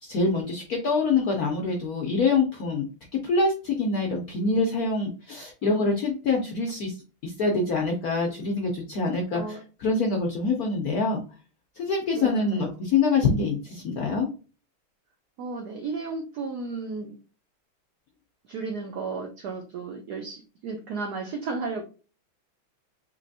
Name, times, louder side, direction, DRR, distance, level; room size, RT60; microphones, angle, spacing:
voice 1, 0.0-2.9 3.2-7.0 7.2-11.2 11.8-14.3, left 3 dB, 70° left, 1 dB, 0.8 m, -25 dB
voice 2, 5.6-5.9 9.3-9.6 12.1-12.8 15.4-17.2 18.4-21.8, right 4 dB, 80° right, 3 dB, 0.8 m, -34 dB
4.2 x 3.1 x 2.6 m, 0.35 s
omnidirectional pair, 2.4 m